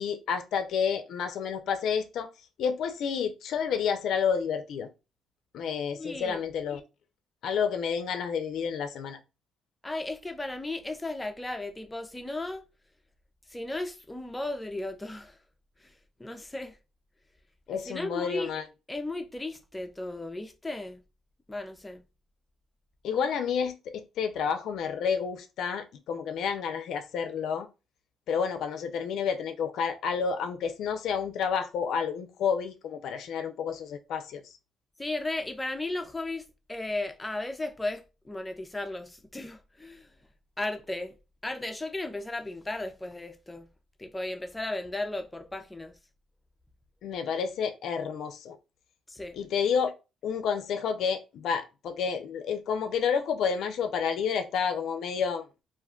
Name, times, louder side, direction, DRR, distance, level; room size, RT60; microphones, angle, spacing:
voice 1, 0.0-2.3 2.6-4.9 5.5-6.8 7.4-9.2 17.7-18.6 23.0-27.7 28.3-34.5 47.0-48.6 49.3-49.9 50.2-55.4, left 6 dB, 75° left, 0.4 m, -30 dB
voice 2, 5.9-6.4 9.8-12.6 13.5-15.4 15.8-16.8 17.9-18.5 18.9-21.0 21.5-22.1 35.0-40.1 40.6-41.2 41.4-43.7 44.0-46.0 49.1-49.4, left 2 dB, 15° left, 0.4 m, -35 dB
2.4 x 2.2 x 3.5 m
cardioid pair, 90°, 0 cm